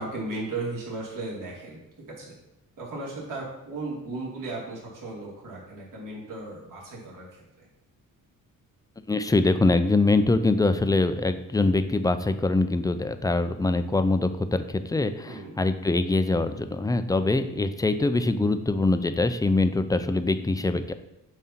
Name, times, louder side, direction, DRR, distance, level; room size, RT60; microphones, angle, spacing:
voice 1, 0.0-1.8 2.1-2.4 2.8-7.7 15.3-15.5, right 2 dB, 65° right, -5 dB, 2.4 m, -36 dB
voice 2, 9.1-20.9, left 2 dB, 10° left, 10 dB, 0.4 m, -23 dB
7.3 x 2.8 x 5.8 m, 0.92 s
cardioid pair, 90°, 33 cm